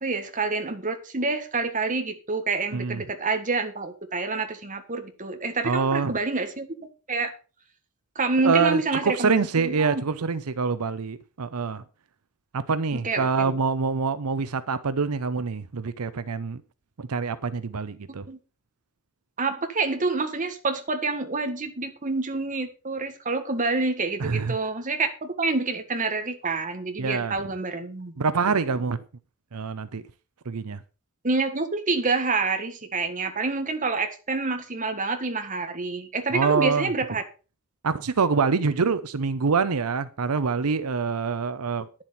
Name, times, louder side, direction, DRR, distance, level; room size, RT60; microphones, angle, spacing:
voice 1, 0.0-6.8 7.1-7.3 8.1-10.0 12.9-13.5 18.3-18.4 19.4-28.1 31.2-37.2, right 3 dB, 35° right, 1.7 m, -27 dB
voice 2, 5.6-6.1 8.4-11.8 12.5-16.6 17.0-18.3 24.2-24.6 27.0-27.3 28.2-29.0 29.5-30.0 30.5-30.8 36.3-36.9 37.8-41.9, right 5 dB, 85° right, 0.7 m, -25 dB
10.5 x 7.4 x 5.8 m
head